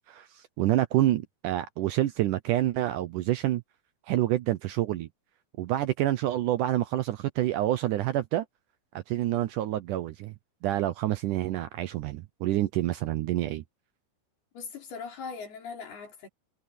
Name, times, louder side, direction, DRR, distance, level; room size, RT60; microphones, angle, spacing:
voice 1, 0.1-3.6 4.1-5.1 5.6-8.5 9.1-10.3 10.6-13.6, right 14 dB, 75° right, 1.9 m, -27 dB
voice 2, 14.5-16.3, left 5 dB, 85° left, 6.4 m, -40 dB
omnidirectional pair, 4.4 m